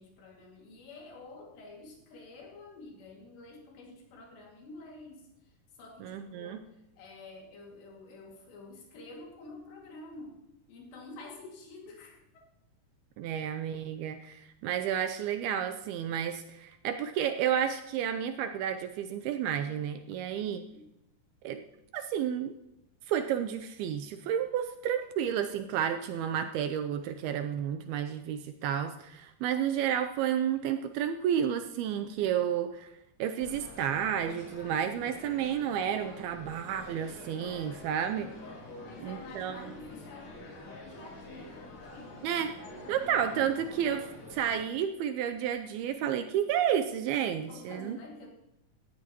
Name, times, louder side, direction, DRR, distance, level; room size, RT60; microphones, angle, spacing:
voice 1, 0.0-5.3 5.8-10.4 10.7-12.5 20.4-20.9 38.8-43.1 47.4-48.3, left 2 dB, 90° left, -1 dB, 4.5 m, -49 dB
voice 2, 6.0-6.6 13.2-20.6 21.4-21.6 21.9-22.5 23.1-32.9 33.2-38.3 39.0-39.6 42.2-42.5 42.9-48.0, right 9 dB, 80° right, 7 dB, 2.3 m, -31 dB
sound 1, 33.4-44.7, left 2 dB, 70° left, 5.0 m, -47 dB
18.0 x 13.0 x 3.0 m, 0.87 s
omnidirectional pair, 4.8 m